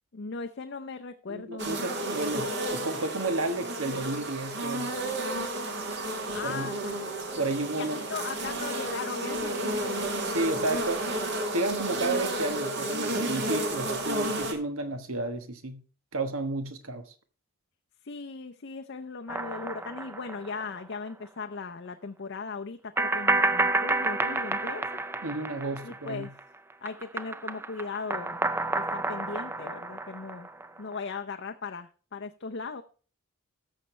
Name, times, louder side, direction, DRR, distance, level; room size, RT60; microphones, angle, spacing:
voice 1, 0.1-1.9 6.3-7.0 7.7-9.8 18.0-25.0 25.8-26.3 26.8-28.4 28.7-30.5 30.8-32.8, left 4 dB, 55° left, 0.6 m, -38 dB
voice 2, 1.3-4.9 6.4-6.7 7.4-8.0 10.2-11.1 11.5-15.8 16.1-17.0 25.2-26.3, right 2 dB, 80° right, 1.3 m, -32 dB
sound 1, 1.6-14.5, right 1 dB, 55° right, 2.0 m, -32 dB
sound 2, 19.3-20.9 21.2-21.3 23.0-26.4 26.7-30.9, right 2 dB, 10° right, 0.3 m, -30 dB
14.0 x 6.5 x 3.2 m
head